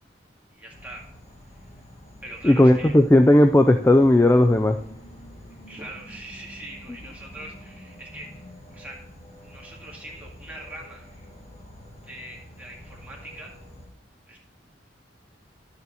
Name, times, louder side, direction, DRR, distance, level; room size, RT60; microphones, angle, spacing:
voice 1, 0.5-1.1 1.5-1.6 2.2-2.9 5.7-8.5 8.7-9.0 9.4-11.0 12.0-13.5 14.3-14.4, right 1 dB, 10° right, -3 dB, 2.1 m, -42 dB
Insect / Frog, 0.7-13.9, left 1 dB, 30° left, 1.8 m, -47 dB
voice 2, 2.4-4.8, left 1 dB, 10° left, 7 dB, 0.4 m, -16 dB
11.0 x 6.9 x 4.1 m, 0.66 s
head